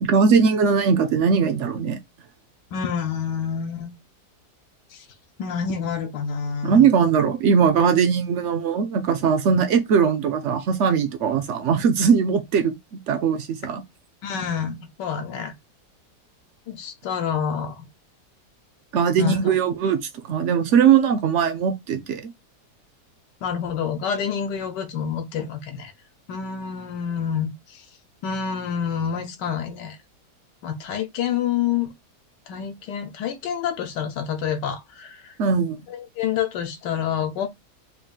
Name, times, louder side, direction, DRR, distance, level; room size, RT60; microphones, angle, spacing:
voice 1, 0.0-2.0 6.6-13.8 18.9-20.0 20.3-22.3 35.4-35.8, right 6 dB, 70° right, 0.7 m, -20 dB
voice 2, 2.7-3.9 4.9-5.1 5.4-6.9 14.2-15.5 16.7-17.9 19.2-19.5 23.4-25.9 26.3-27.9 28.2-30.0 30.6-31.9 32.5-35.4 35.9-37.5, left 7 dB, 85° left, 1.3 m, -28 dB
3.9 x 2.4 x 3.6 m
omnidirectional pair, 1.8 m